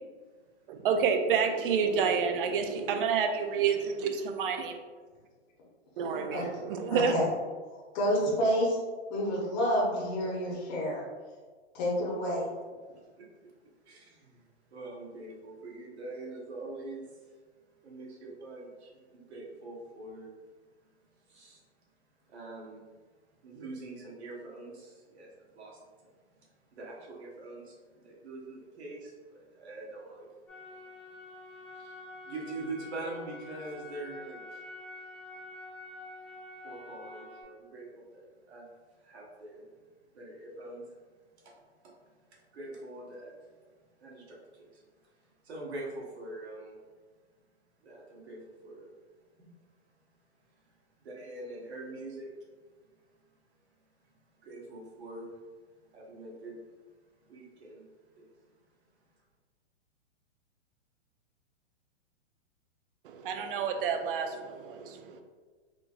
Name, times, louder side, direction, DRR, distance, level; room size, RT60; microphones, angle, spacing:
voice 1, 0.7-4.8 6.0-7.1 63.0-65.2, right 6 dB, 50° right, 6 dB, 0.4 m, -29 dB
voice 2, 3.2-3.6 12.9-13.5 13.8-17.4 17.8-20.3 21.1-21.7 22.3-22.9 23.4-26.1 26.4-30.3 31.4-34.6 36.6-38.6 38.9-39.6 40.1-41.0 41.4-41.6 41.8-41.9 42.3-43.5 44.0-46.8 47.8-48.9 49.4-49.5 50.5-52.3 54.4-55.4 55.8-56.8 57.2-57.8 58.1-58.3, right 2 dB, 65° right, -3 dB, 1.1 m, -44 dB
voice 3, 6.9-7.3 7.9-8.8 9.1-11.0 11.7-12.5, equal, 40° left, -5 dB, 0.9 m, -28 dB
sound 1, 30.5-37.4, left 2 dB, 10° left, 0.8 m, -47 dB
3.6 x 2.5 x 2.5 m, 1.4 s
hypercardioid pair, 145°, 35 cm